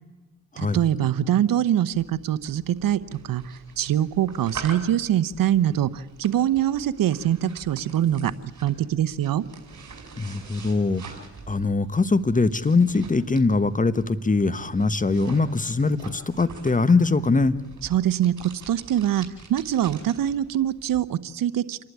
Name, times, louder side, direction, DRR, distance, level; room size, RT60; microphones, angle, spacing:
voice 1, 0.6-9.4 17.8-21.8, right 11 dB, 70° right, 16 dB, 1.0 m, -24 dB
sound 1, 1.9-21.0, right 4 dB, 55° right, 5.2 m, -45 dB
voice 2, 10.2-11.0 11.5-17.5, left 3 dB, 20° left, 15 dB, 1.2 m, -22 dB
28.0 x 11.5 x 9.8 m, 1.2 s
cardioid pair, 65°, 35 cm